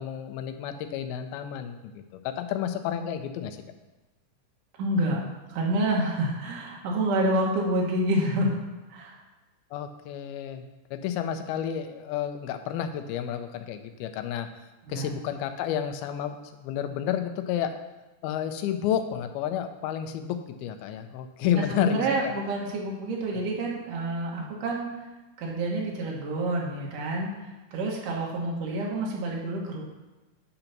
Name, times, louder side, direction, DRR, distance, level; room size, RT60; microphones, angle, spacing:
voice 1, 0.0-3.6 9.7-14.5 14.9-17.7 18.2-22.3 23.3-23.4, left 9 dB, 90° left, 7 dB, 2.6 m, -31 dB
voice 2, 4.8-5.2 5.5-8.6 8.9-9.2 14.9-15.1 21.4-24.9 25.4-29.8, right 1 dB, 65° right, -2 dB, 2.7 m, -28 dB
8.8 x 3.9 x 5.9 m, 1.1 s
omnidirectional pair, 4.3 m